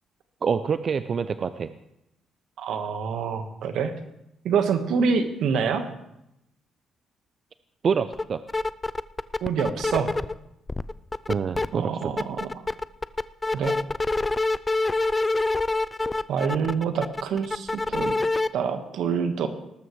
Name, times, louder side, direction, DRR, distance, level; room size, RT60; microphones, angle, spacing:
voice 1, 0.4-1.7 7.8-8.4 11.3-12.1, right 6 dB, 50° right, 11 dB, 0.5 m, -26 dB
voice 2, 2.6-3.9 4.4-5.9 9.4-10.1 11.7-12.5 13.5-13.8 16.3-18.1 18.5-19.5, right 6 dB, 80° right, 7 dB, 1.4 m, -26 dB
sound 1, 8.1-8.2 8.5-10.3 10.7-11.7 12.0-18.5, left 2 dB, 20° left, 0.4 m, -26 dB
19.0 x 13.0 x 3.2 m, 0.84 s
cardioid pair, 90°, 0 cm